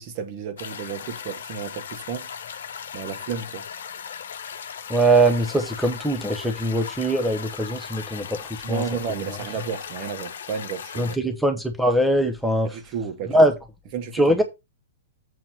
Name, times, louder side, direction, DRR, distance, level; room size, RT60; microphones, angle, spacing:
voice 1, 0.0-2.3 2.9-3.6 8.6-11.1 12.6-13.4 13.9-14.4, right 6 dB, 40° right, 1.7 m, -32 dB
sound 1, 0.6-11.2, left 7 dB, 60° left, 1.0 m, -37 dB
voice 2, 4.9-8.8 9.1-9.4 11.0-12.8 13.3-13.6 14.1-14.4, right 1 dB, ahead, 1.2 m, -22 dB
7.7 x 4.5 x 5.7 m
figure-of-eight pair, 105°, 0 cm